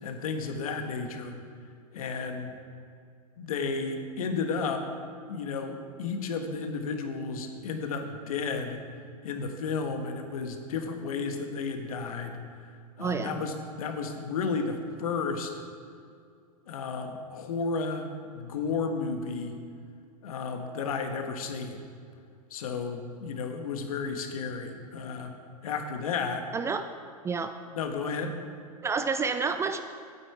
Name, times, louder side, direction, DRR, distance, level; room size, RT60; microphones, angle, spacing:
voice 1, 0.0-1.4 1.9-2.5 3.4-4.8 5.3-8.8 9.2-12.4 13.0-15.5 16.7-19.6 20.2-21.8 22.5-25.3 25.6-26.4 27.7-28.4, left 4 dB, 65° left, 5 dB, 1.3 m, -33 dB
voice 2, 13.0-13.4 26.5-26.9 27.2-27.6 28.8-29.8, right 5 dB, 15° right, 8 dB, 0.4 m, -29 dB
8.8 x 8.7 x 4.7 m, 2.3 s
hypercardioid pair, 105°, 20 cm